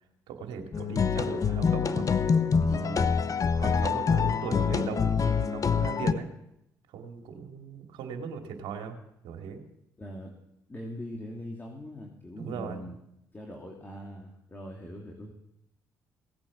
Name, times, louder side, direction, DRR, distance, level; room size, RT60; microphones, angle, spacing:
voice 1, 0.3-3.1 3.6-6.3 6.9-9.0 9.2-9.6 12.4-12.8, right 6 dB, 75° right, 4 dB, 2.5 m, -38 dB
sound 1, 0.7-6.1, left 6 dB, 40° left, 0.9 m, -25 dB
voice 2, 10.0-10.3 10.7-13.0 13.3-15.3, equal, 20° left, 0 dB, 2.9 m, -41 dB
18.0 x 8.8 x 7.2 m, 0.80 s
hypercardioid pair, 55°, 9 cm